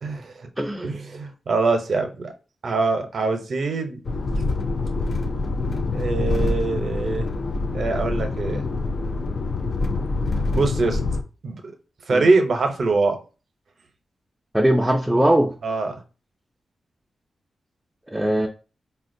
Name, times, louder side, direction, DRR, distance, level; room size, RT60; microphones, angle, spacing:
voice 1, 0.0-0.5 0.8-2.3 2.6-4.0 5.9-7.3 7.7-8.7 10.5-11.0 11.4-11.7 12.1-13.2 15.6-16.0, right 3 dB, 65° right, 0.6 m, -23 dB
voice 2, 0.6-1.0 12.1-12.2 14.5-15.5 18.1-18.5, right 1 dB, 10° right, 0.4 m, -20 dB
sound 1, 4.0-11.2, left 3 dB, 50° left, 0.4 m, -25 dB
4.1 x 2.2 x 2.6 m
cardioid pair, 75°, 0 cm